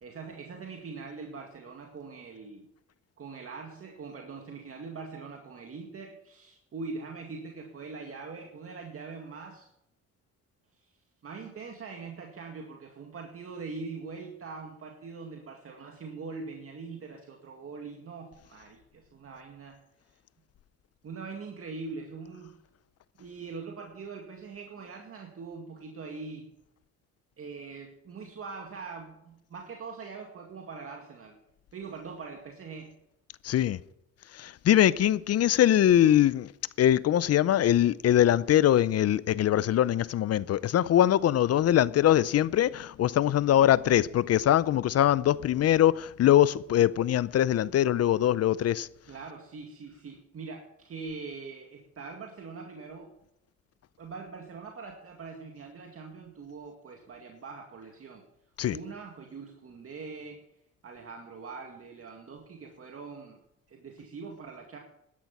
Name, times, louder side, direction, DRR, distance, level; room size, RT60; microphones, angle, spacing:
voice 1, 0.0-2.7 3.2-9.7 11.2-19.8 21.0-22.6 23.2-26.5 27.4-31.4 31.7-32.9 49.0-53.1 54.0-58.2 58.7-60.5 60.8-63.4 63.7-64.8, right 4 dB, 50° right, 2.1 m, -42 dB
voice 2, 33.4-33.8 34.4-36.5 36.8-48.9 58.6-58.8, left 11 dB, 55° left, 0.5 m, -22 dB
12.5 x 10.5 x 5.9 m
cardioid pair, 90°, 30 cm